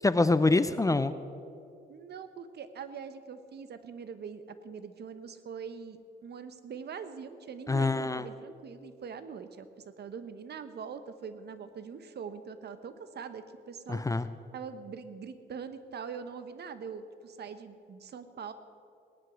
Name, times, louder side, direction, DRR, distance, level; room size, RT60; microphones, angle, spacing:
voice 1, 0.0-1.1 7.7-8.2 13.9-14.3, left 3 dB, 15° left, 13 dB, 0.6 m, -25 dB
voice 2, 1.9-9.7 10.0-14.0 14.5-18.5, right 6 dB, 55° right, 11 dB, 1.1 m, -43 dB
18.0 x 11.0 x 6.3 m, 2.6 s
cardioid pair, 90°, 20 cm